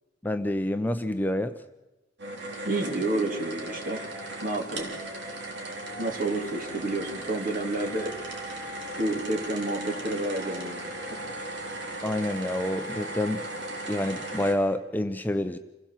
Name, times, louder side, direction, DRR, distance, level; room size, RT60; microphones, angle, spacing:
voice 1, 0.2-1.5 12.0-13.4 13.9-15.6, left 1 dB, 10° left, 9 dB, 0.7 m, -28 dB
sound 1, 2.2-14.5, right 1 dB, 65° right, 3.6 m, -37 dB
voice 2, 2.6-4.0 4.4-4.9 6.0-8.1 9.0-10.8 11.1-11.2, right 2 dB, 50° right, 3 dB, 2.9 m, -30 dB
27.0 x 16.5 x 7.5 m, 1.0 s
head